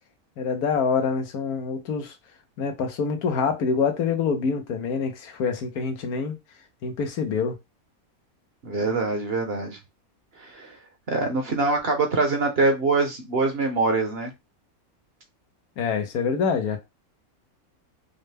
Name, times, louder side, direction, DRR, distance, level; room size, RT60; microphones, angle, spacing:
voice 1, 0.4-2.1 2.6-6.3 6.8-7.6 15.8-16.8, left 5 dB, 85° left, 1.4 m, -26 dB
voice 2, 8.6-9.8 10.4-10.8 11.1-14.3, right 3 dB, 50° right, 1.0 m, -24 dB
5.4 x 2.2 x 3.3 m
omnidirectional pair, 1.5 m